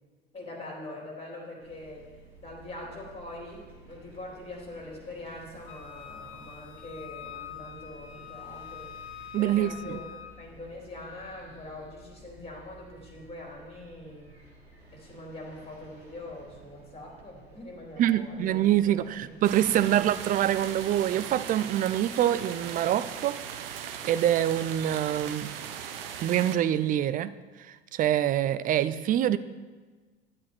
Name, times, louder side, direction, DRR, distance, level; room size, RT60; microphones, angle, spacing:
voice 1, 0.3-2.0 2.4-8.9 9.4-10.1 10.4-14.3 14.9-19.3 19.7-20.1, left 1 dB, 20° left, 3.6 m, -43 dB
sound 1, 1.6-20.9, right 2 dB, 90° right, 1.9 m, -54 dB
Wind instrument woodwind instrument, 5.7-10.4, left 9 dB, 40° left, 1.2 m, -44 dB
voice 2, 9.3-10.0 18.0-23.4 23.7-25.5 26.2-29.4, right 11 dB, 30° right, 0.4 m, -25 dB
sound 2, 19.4-26.6, right 8 dB, 65° right, 0.9 m, -39 dB
11.5 x 8.1 x 4.3 m
figure-of-eight pair, 70°, 31 cm